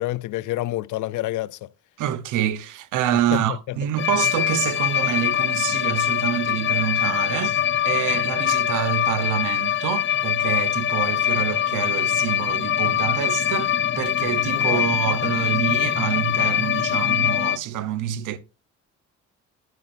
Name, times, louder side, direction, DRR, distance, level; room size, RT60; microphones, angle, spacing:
voice 1, 0.0-1.7 3.3-3.8 14.5-14.9, left 16 dB, 80° left, 0.5 m, -28 dB
voice 2, 2.0-18.4, right 11 dB, 85° right, 1.1 m, -27 dB
sound 1, 4.0-17.6, left 10 dB, 40° left, 0.7 m, -23 dB
12.0 x 9.3 x 2.6 m
cardioid pair, 90°, 30 cm